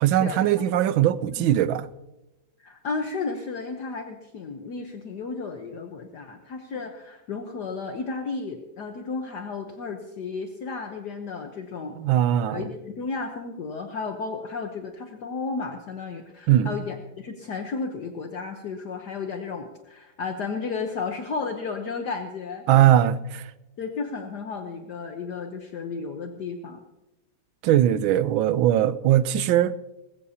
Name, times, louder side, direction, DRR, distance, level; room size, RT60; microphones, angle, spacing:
voice 1, 0.0-1.9 12.0-12.6 16.5-16.7 22.7-23.5 27.6-29.8, right 12 dB, 80° right, 1.4 m, -20 dB
voice 2, 2.6-12.0 12.5-23.0 23.8-26.8, left 4 dB, 60° left, 1.5 m, -33 dB
20.5 x 15.0 x 2.8 m
omnidirectional pair, 2.2 m